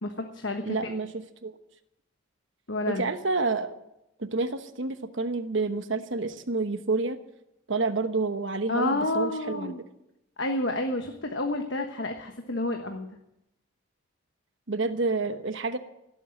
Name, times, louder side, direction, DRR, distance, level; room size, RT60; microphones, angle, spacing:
voice 1, 0.0-0.6 2.7-3.0 8.7-9.8 10.4-13.1, left 2 dB, 60° left, 4 dB, 1.3 m, -29 dB
voice 2, 0.6-1.6 2.9-3.7 4.2-7.2 7.7-9.8 14.7-15.8, right 3 dB, 65° right, 9 dB, 1.1 m, -29 dB
17.5 x 8.3 x 8.7 m, 0.87 s
head